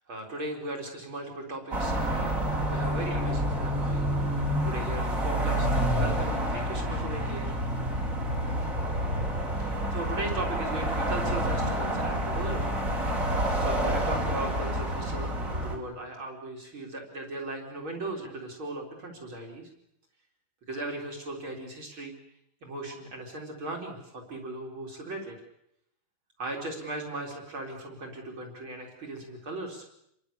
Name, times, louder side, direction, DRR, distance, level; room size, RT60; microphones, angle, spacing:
voice 1, 0.1-7.6 9.6-12.7 13.6-19.7 20.7-22.1 22.6-25.4 26.4-29.8, right 2 dB, 70° right, 0 dB, 4.7 m, -38 dB
sound 1, 1.7-15.8, equal, 35° right, 4.7 m, -28 dB
29.0 x 23.0 x 7.1 m, 0.77 s
omnidirectional pair, 2.3 m